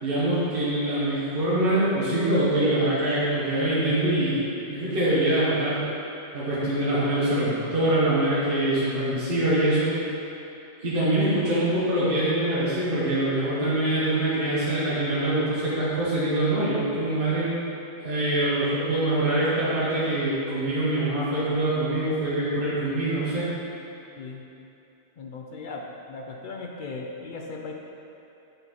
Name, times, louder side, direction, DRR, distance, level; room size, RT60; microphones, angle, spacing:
voice 1, 0.0-4.4 4.7-5.8 6.3-9.9 10.8-17.5 18.0-23.5, right 1 dB, 50° right, -10 dB, 1.4 m, -24 dB
voice 2, 25.2-27.7, left 3 dB, 60° left, 0 dB, 0.6 m, -37 dB
6.9 x 4.2 x 4.1 m, 2.8 s
omnidirectional pair, 1.2 m